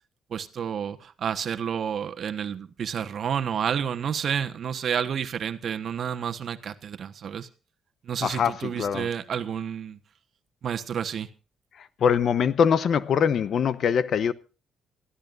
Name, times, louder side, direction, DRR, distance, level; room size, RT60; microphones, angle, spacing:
voice 1, 0.3-7.5 8.0-10.0 10.6-11.3, right 8 dB, 60° right, 1.2 m, -30 dB
voice 2, 8.2-9.1 12.0-14.3, left 7 dB, 60° left, 0.8 m, -23 dB
24.5 x 14.0 x 2.6 m
cardioid pair, 90°, 0 cm